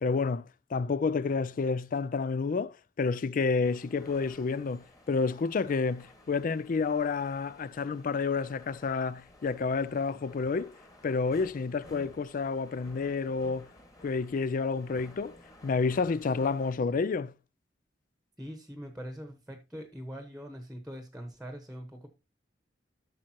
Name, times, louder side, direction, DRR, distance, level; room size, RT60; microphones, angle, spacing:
voice 1, 0.0-10.7 11.0-13.7 14.0-15.4 15.6-17.3, left 4 dB, 45° left, 0.4 m, -30 dB
sound 1, 3.6-16.7, left 1 dB, 20° left, 1.8 m, -55 dB
voice 2, 18.4-22.1, equal, 5° right, 1.1 m, -42 dB
12.0 x 6.5 x 2.9 m
head